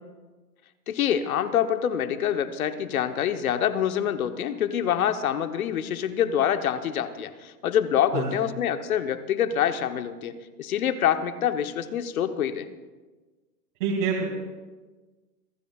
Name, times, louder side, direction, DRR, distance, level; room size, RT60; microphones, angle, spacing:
voice 1, 0.9-12.7, left 9 dB, 60° left, 9 dB, 1.0 m, -26 dB
voice 2, 13.8-14.3, right 5 dB, 35° right, -5 dB, 2.6 m, -25 dB
26.5 x 12.5 x 2.4 m, 1.3 s
hypercardioid pair, 170°, 49 cm